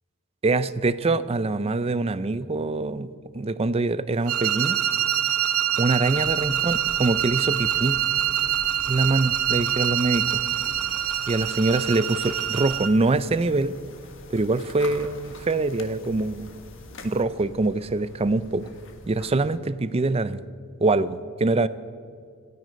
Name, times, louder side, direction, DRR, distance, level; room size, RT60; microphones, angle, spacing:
voice 1, 0.4-4.8 5.8-8.0 8.9-10.4 11.3-13.8 14.3-16.5 17.0-18.7 19.1-20.4 20.8-21.7, right 3 dB, 25° right, 15 dB, 0.5 m, -24 dB
sound 1, 4.3-13.0, right 11 dB, 70° right, 0.8 m, -25 dB
sound 2, 6.1-19.6, left 2 dB, 60° left, 1.6 m, -45 dB
26.5 x 9.5 x 5.2 m, 2.2 s
head